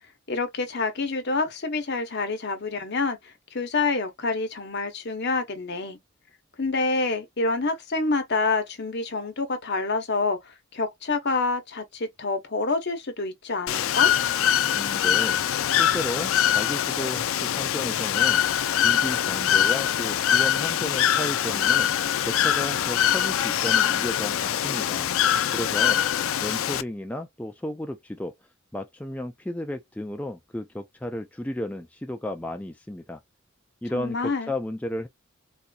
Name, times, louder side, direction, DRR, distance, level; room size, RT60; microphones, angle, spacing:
voice 1, 0.3-6.0 6.6-14.1 33.9-34.5, left 3 dB, 55° left, 1.0 m, -27 dB
Bird / Water, 13.7-26.8, left 10 dB, 75° left, 0.4 m, -23 dB
voice 2, 14.7-18.4 18.7-21.9 22.2-25.1 25.5-26.0 26.4-28.3 28.7-33.2 33.8-35.1, left 1 dB, 5° left, 0.4 m, -33 dB
4.1 x 2.5 x 2.3 m
head